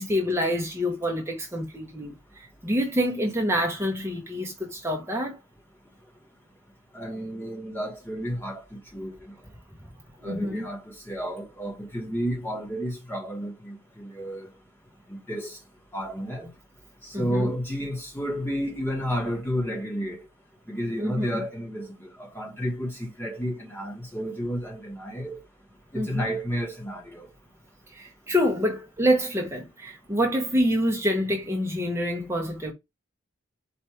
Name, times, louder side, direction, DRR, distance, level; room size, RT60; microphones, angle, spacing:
voice 1, 0.0-5.4 10.2-10.6 17.1-17.5 21.0-21.3 25.9-26.3 27.9-32.7, equal, 10° right, 0.8 m, -27 dB
voice 2, 6.9-9.3 10.2-10.8 11.1-14.5 15.1-15.6 15.9-16.5 17.0-20.2 20.7-25.4 25.9-27.3, equal, 10° left, 1.1 m, -31 dB
4.3 x 2.5 x 4.7 m
head